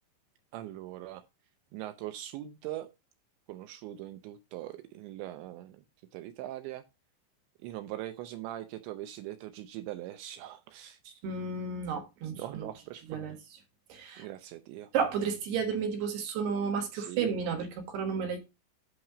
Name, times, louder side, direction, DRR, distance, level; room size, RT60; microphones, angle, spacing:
voice 1, 0.5-1.2 1.7-2.9 3.5-5.8 6.1-6.8 7.6-11.2 12.3-13.2 14.2-14.9 16.9-17.4, right 14 dB, 80° right, 2.7 m, -41 dB
voice 2, 11.2-12.7 13.1-13.3 13.9-14.3 14.9-18.4, right 6 dB, 65° right, 3.1 m, -32 dB
11.0 x 4.2 x 4.8 m
omnidirectional pair, 5.6 m